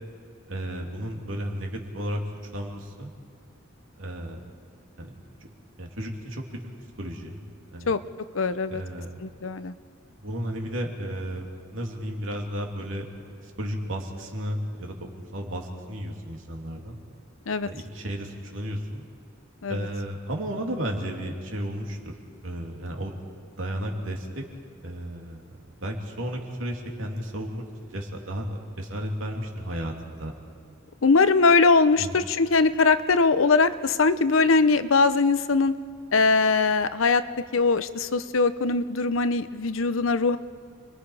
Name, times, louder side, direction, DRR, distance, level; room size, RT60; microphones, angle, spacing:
voice 1, 0.5-2.2 2.5-3.1 4.0-4.4 5.0-5.1 5.8-7.4 7.7-7.9 8.7-9.2 10.2-13.1 13.6-17.0 17.6-19.1 19.7-22.1 22.4-23.2 23.6-24.4 24.8-25.4 25.8-30.3 32.0-32.2, equal, 75° right, 1 dB, 2.9 m, -33 dB
voice 2, 8.3-8.8 9.2-9.7 17.5-17.7 19.6-19.9 31.0-35.7 36.1-37.2 37.5-40.4, left 4 dB, 85° left, 13 dB, 0.8 m, -21 dB
29.5 x 22.0 x 4.9 m, 2.2 s
head